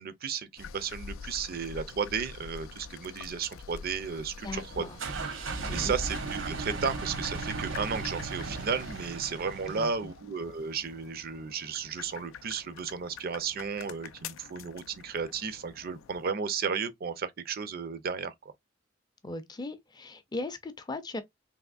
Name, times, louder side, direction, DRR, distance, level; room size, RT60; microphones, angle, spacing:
voice 1, 0.0-4.9 5.7-18.3, right 6 dB, 50° right, 0.5 m, -34 dB
sound 1, 0.6-16.3, left 6 dB, 85° left, 0.4 m, -47 dB
voice 2, 4.4-5.0 5.7-6.0 9.7-10.1 19.2-21.2, left 2 dB, 20° left, 0.5 m, -38 dB
sound 2, 4.5-10.1, right 3 dB, 75° right, 0.9 m, -36 dB
3.5 x 2.8 x 2.4 m
head